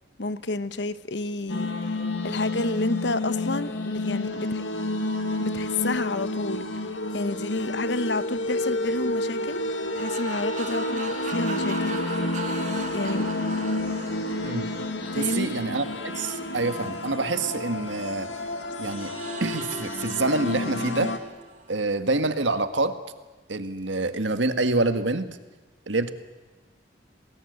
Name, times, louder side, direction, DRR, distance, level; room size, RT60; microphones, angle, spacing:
voice 1, 0.2-2.0 2.2-4.6 5.4-9.6 9.9-12.0 12.9-13.3 15.1-15.5, left 2 dB, 75° left, 14 dB, 1.0 m, -30 dB
sound 1, 1.5-21.2, left 2 dB, 90° left, 2.2 m, -30 dB
sound 2, 10.0-18.2 18.9-22.0, right 4 dB, 40° right, 2.3 m, -40 dB
voice 2, 15.1-18.3 18.8-19.1 19.4-21.2 21.7-23.0 23.5-25.3 25.9-26.1, right 2 dB, 85° right, 9 dB, 1.7 m, -26 dB
28.5 x 20.0 x 8.2 m, 1.2 s
head